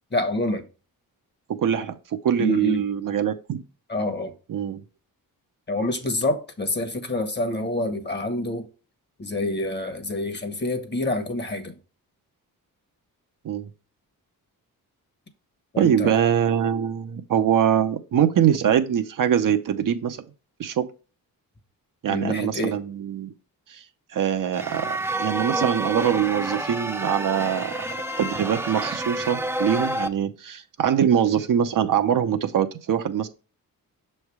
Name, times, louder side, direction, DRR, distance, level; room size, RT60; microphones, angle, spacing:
voice 1, 0.1-0.6 2.4-2.8 3.9-4.3 5.7-8.7 9.2-11.7 15.7-16.1 22.1-22.8, left 1 dB, 30° left, 1.1 m, -27 dB
voice 2, 1.6-1.9 2.2-3.6 4.5-4.8 13.4-13.7 15.8-20.2 20.6-20.9 22.0-23.3 23.7-23.8 24.1-27.8 28.2-33.3, right 9 dB, 60° right, 0.7 m, -23 dB
sound 1, 24.5-30.1, right 1 dB, 5° right, 0.5 m, -29 dB
6.3 x 3.3 x 4.7 m
cardioid pair, 90°, 36 cm